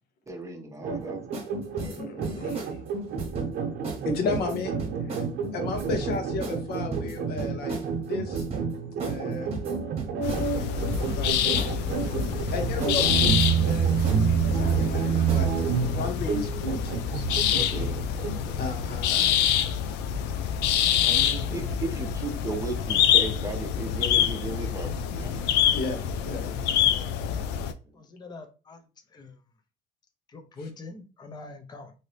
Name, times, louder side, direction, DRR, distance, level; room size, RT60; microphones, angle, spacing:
voice 1, 0.3-1.2 1.8-2.2 3.1-3.3 15.5-15.9 17.5-18.0 18.3-18.7 21.0-25.5 25.8-26.1 26.4-26.6, right 2 dB, 15° right, 4 dB, 0.7 m, -36 dB
sound 1, 0.8-18.4, right 7 dB, 65° right, 0.6 m, -29 dB
sound 2, 1.3-1.5 1.8-2.7 3.2-3.5 3.8-4.0 4.3-5.3 5.7-6.0 6.4-6.6 6.9-7.9 8.3-8.7 9.0-9.2 9.5-10.5 10.9-11.3 11.6-11.8 12.0-13.0 13.3-14.2 14.6-15.0 15.3-15.6, right 4 dB, 35° right, 1.0 m, -35 dB
voice 2, 1.8-2.8 4.0-4.7 5.0-5.2 5.5-8.4 9.0-9.5 11.1-11.4 12.5-15.5 15.9-17.3 18.6-19.5 21.0-21.2 25.7-26.5, left 3 dB, 70° left, 5 dB, 0.9 m, -34 dB
sound 3, 10.2-27.7, left 9 dB, 90° left, 0.4 m, -26 dB
voice 3, 27.9-29.4 30.3-31.9, left 3 dB, 25° left, 5 dB, 0.6 m, -44 dB
2.7 x 2.7 x 3.2 m, 0.33 s
cardioid pair, 110°, 17 cm